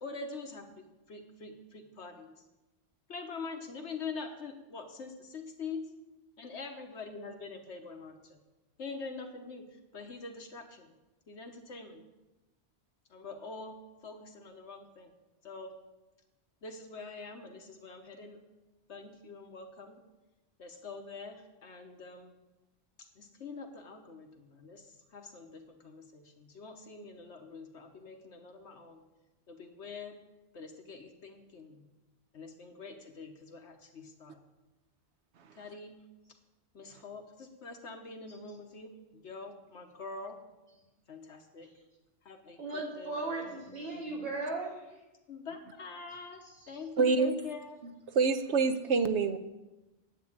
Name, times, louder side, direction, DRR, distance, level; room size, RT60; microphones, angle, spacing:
voice 1, 0.0-2.4 3.1-5.9 6.4-8.4 8.8-10.9 11.3-12.0 13.1-15.1 15.4-15.7 16.6-18.4 18.9-20.0 20.6-22.3 23.0-29.0 29.5-30.2 30.5-31.8 32.3-34.4 35.6-36.0 36.7-40.4 41.1-41.7 42.2-43.6 45.3-47.8, left 4 dB, 80° left, 1.4 m, -45 dB
voice 2, 42.6-44.7, right 2 dB, 55° right, 3.5 m, -36 dB
voice 3, 47.0-47.3 48.1-49.4, right 4 dB, 80° right, 1.0 m, -26 dB
9.3 x 8.5 x 8.5 m
omnidirectional pair, 1.2 m